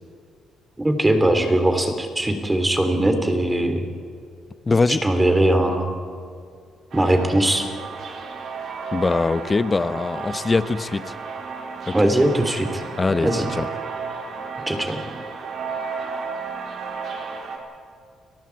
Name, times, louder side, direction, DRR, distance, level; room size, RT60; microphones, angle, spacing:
voice 1, 0.8-3.8 5.0-6.0 6.9-7.7 11.9-12.8 13.2-13.5 14.7-15.0, right 1 dB, 15° right, 6 dB, 3.4 m, -20 dB
voice 2, 4.7-5.0 8.9-11.1 11.9-12.0 13.0-13.7, left 3 dB, 25° left, 12 dB, 1.0 m, -22 dB
sound 1, 6.9-17.6, right 5 dB, 60° right, 3.6 m, -33 dB
30.0 x 18.5 x 4.8 m, 2.3 s
cardioid pair, 90°, 0 cm